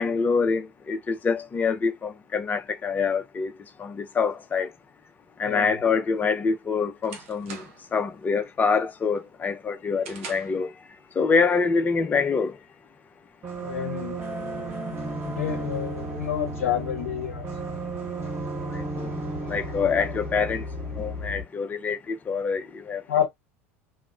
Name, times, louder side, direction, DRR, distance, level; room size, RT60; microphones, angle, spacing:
voice 1, 0.0-3.5 3.8-4.7 5.4-7.6 7.9-10.7 11.2-12.6 18.7-20.6 21.0-23.0, left 5 dB, 20° left, 0.5 m, -25 dB
voice 2, 5.4-5.8 13.5-14.6 14.9-17.4 23.1-23.3, left 10 dB, 70° left, 0.7 m, -29 dB
sound 1, 6.2-8.0 8.4-8.8 9.2-10.7, right 5 dB, 65° right, 0.7 m, -43 dB
sound 2, 13.4-21.4, right 2 dB, 30° right, 1.2 m, -33 dB
3.0 x 2.0 x 2.4 m
figure-of-eight pair, 70°, 8 cm